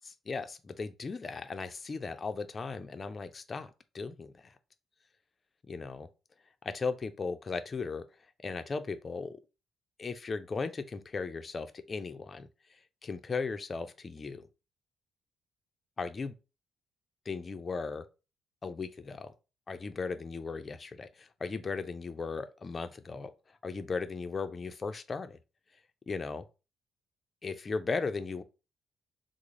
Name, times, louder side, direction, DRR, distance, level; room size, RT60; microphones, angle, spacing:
voice 1, 0.0-4.5 5.7-6.1 6.6-8.0 8.4-9.4 10.0-12.5 13.0-14.4 16.0-16.3 17.3-18.0 18.6-19.3 19.7-23.3 23.6-25.4 26.1-26.4 27.4-28.4, left 4 dB, 35° left, 0.4 m, -37 dB
3.6 x 2.0 x 3.2 m
cardioid pair, 90°, 0 cm